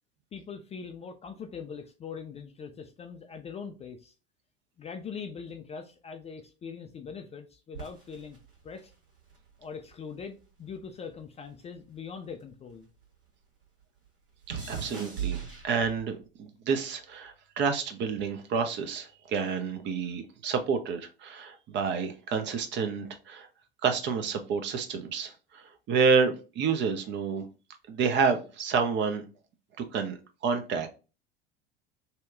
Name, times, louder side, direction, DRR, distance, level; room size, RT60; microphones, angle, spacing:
voice 1, 0.3-4.1 4.8-8.4 8.6-8.9 9.6-12.9, left 6 dB, 20° left, 5 dB, 0.4 m, -42 dB
sound 1, 7.7-10.2 10.5-13.2 13.4-16.2 17.0-17.4, right 8 dB, 65° right, 1.5 m, -40 dB
voice 2, 14.5-15.4 15.6-23.5 23.8-27.5 27.9-29.2 29.9-30.2 30.4-30.9, right 5 dB, 40° right, 7 dB, 0.6 m, -29 dB
2.8 x 2.2 x 3.5 m, 0.33 s
figure-of-eight pair, 70°, 30 cm